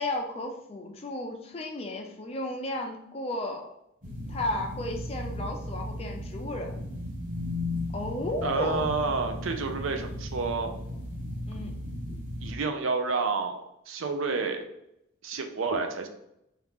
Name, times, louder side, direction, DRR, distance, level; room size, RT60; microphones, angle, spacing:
voice 1, 0.0-3.7 4.3-6.7 7.9-8.8 11.5-11.7, left 1 dB, 30° left, 3 dB, 0.4 m, -33 dB
sound 1, 4.0-12.5, left 1 dB, 40° right, 1.0 m, -36 dB
voice 2, 8.4-10.7 12.4-13.6 13.9-14.6 15.2-16.1, right 4 dB, 75° right, 6 dB, 0.5 m, -29 dB
3.0 x 2.4 x 3.4 m, 0.80 s
head